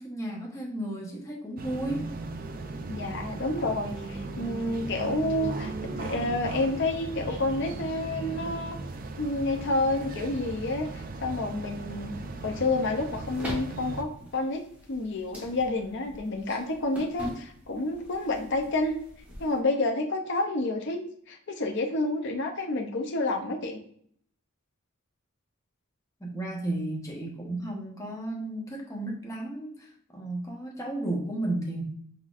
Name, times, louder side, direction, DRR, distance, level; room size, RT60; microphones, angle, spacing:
voice 1, 0.0-2.1 26.2-31.8, right 1 dB, 15° left, -1 dB, 1.0 m, -33 dB
sound 1, 1.6-14.0, right 2 dB, 40° right, 0.4 m, -37 dB
voice 2, 2.9-8.8 9.2-12.1 12.4-14.6 14.9-19.0 19.4-21.0 21.3-23.8, left 2 dB, 55° left, 3 dB, 0.6 m, -29 dB
sound 2, 13.1-19.6, left 1 dB, 5° right, 1.2 m, -43 dB
4.5 x 4.0 x 2.5 m, 0.63 s
head